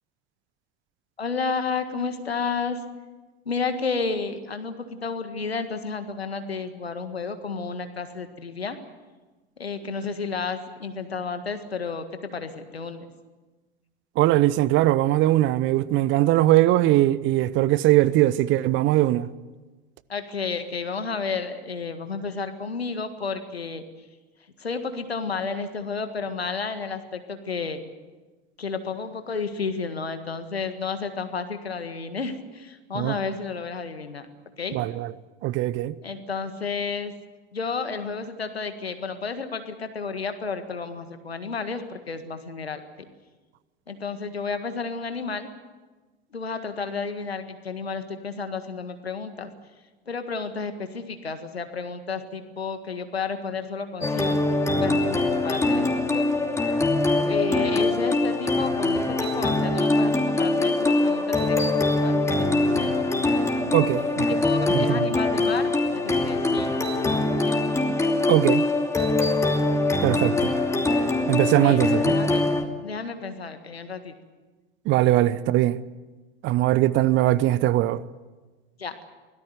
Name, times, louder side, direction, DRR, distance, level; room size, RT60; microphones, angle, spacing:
voice 1, 1.2-2.8 3.5-4.7 5.0-8.8 9.6-13.1 20.1-23.8 24.6-27.8 28.6-34.3 34.6-34.8 36.0-37.1 37.5-42.8 43.9-45.5 46.3-49.5 50.1-54.4 54.8-55.9 56.1-56.3 57.3-61.7 62.0-63.1 64.3-66.7 67.0-67.6 71.5-72.4 72.8-74.1 75.0-75.1 78.8-78.9, left 5 dB, 80° left, 1.8 m, -32 dB
voice 2, 14.2-19.3 32.9-33.2 34.7-35.1 35.4-35.9 63.7-64.4 64.7-65.1 68.3-68.6 70.0-70.5 71.3-72.1 74.9-75.8 76.4-78.0, right 15 dB, 40° right, 0.8 m, -21 dB
sound 1, 54.0-72.6, left 2 dB, 10° left, 2.8 m, -23 dB
24.0 x 17.5 x 8.2 m
figure-of-eight pair, 75°, 30 cm